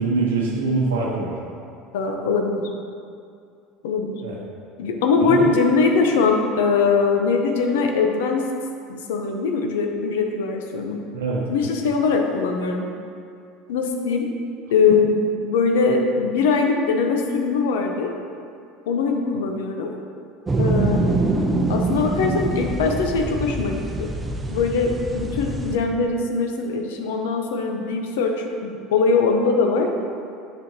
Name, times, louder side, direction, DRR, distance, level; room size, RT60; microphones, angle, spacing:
voice 1, 0.0-1.3 4.2-4.4 5.3-5.6 11.1-11.7 22.2-22.6, right 3 dB, 90° right, -3 dB, 0.8 m, -24 dB
voice 2, 1.9-2.7 3.8-4.2 4.8-8.5 8.9-11.0 11.5-12.8 13.7-14.3 14.7-18.1 18.9-19.9 20.6-21.1 21.7-24.1 24.5-29.9, left 4 dB, 80° left, 3 dB, 0.7 m, -21 dB
sound 1, 20.5-25.8, right 2 dB, 20° right, 0.6 m, -24 dB
6.3 x 6.3 x 2.8 m, 2.4 s
hypercardioid pair, 85°, 0 cm